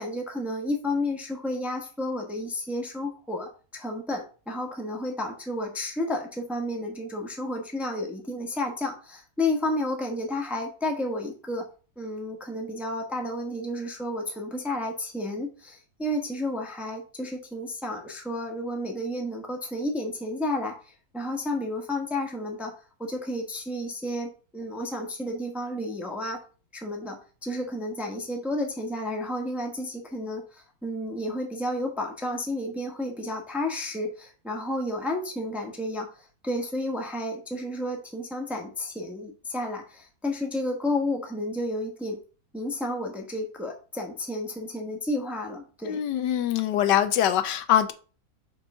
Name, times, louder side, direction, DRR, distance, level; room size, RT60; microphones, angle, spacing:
voice 1, 0.0-11.6 12.0-22.7 23.0-26.4 26.7-42.2 42.5-46.0, left 1 dB, ahead, 2 dB, 0.9 m, -31 dB
voice 2, 45.8-47.9, left 11 dB, 80° left, 11 dB, 1.2 m, -23 dB
5.4 x 4.0 x 5.4 m, 0.37 s
omnidirectional pair, 1.9 m